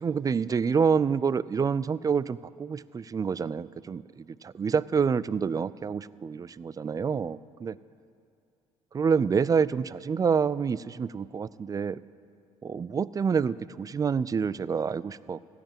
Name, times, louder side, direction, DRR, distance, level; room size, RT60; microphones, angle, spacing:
voice 1, 0.0-7.8 8.9-12.0 12.6-15.4, right 6 dB, 30° right, 19 dB, 0.3 m, -27 dB
16.0 x 5.7 x 9.0 m, 2.5 s
supercardioid pair, 70°, 13 cm